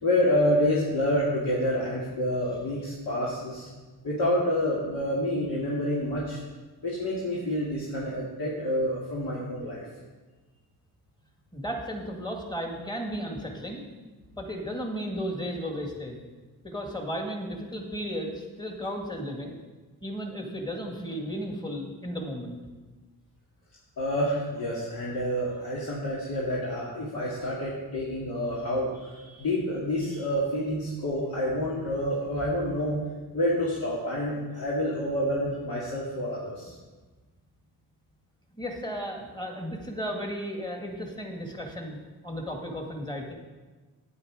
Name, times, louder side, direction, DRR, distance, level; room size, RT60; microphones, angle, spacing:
voice 1, 0.0-3.7 4.0-6.4 6.8-9.8 24.0-33.0 33.3-36.7, left 1 dB, 75° left, -6 dB, 2.2 m, -28 dB
voice 2, 11.5-13.8 14.4-16.2 16.6-19.6 20.0-22.6 38.6-42.0 42.2-43.3, equal, 10° left, 2 dB, 2.0 m, -34 dB
9.6 x 8.9 x 4.9 m, 1.3 s
cardioid pair, 80°, 37 cm